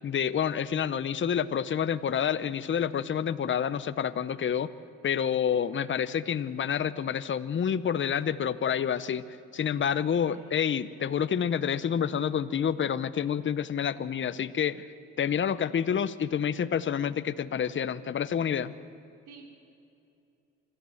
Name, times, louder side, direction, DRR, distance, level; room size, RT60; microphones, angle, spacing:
voice 1, 0.0-4.7 5.0-14.9 15.2-18.7, left 8 dB, 40° left, 14 dB, 0.8 m, -28 dB
voice 2, 10.0-10.6 19.3-19.5, right 4 dB, 80° right, 2 dB, 3.8 m, -52 dB
26.0 x 14.0 x 7.8 m, 2.7 s
cardioid pair, 90°, 30 cm